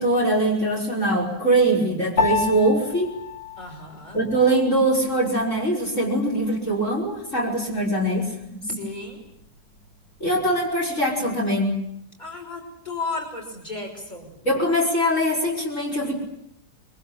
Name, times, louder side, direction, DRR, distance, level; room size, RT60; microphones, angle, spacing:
voice 1, 0.0-3.1 4.1-8.8 10.2-11.7 14.4-16.2, right 1 dB, 40° left, -1 dB, 6.0 m, -22 dB
Piano, 2.2-11.8, left 3 dB, 80° left, 3.7 m, -33 dB
voice 2, 3.6-4.2 8.6-9.2 12.2-14.4, left 3 dB, 25° left, 2 dB, 6.0 m, -34 dB
26.0 x 23.5 x 8.8 m, 0.76 s
omnidirectional pair, 1.9 m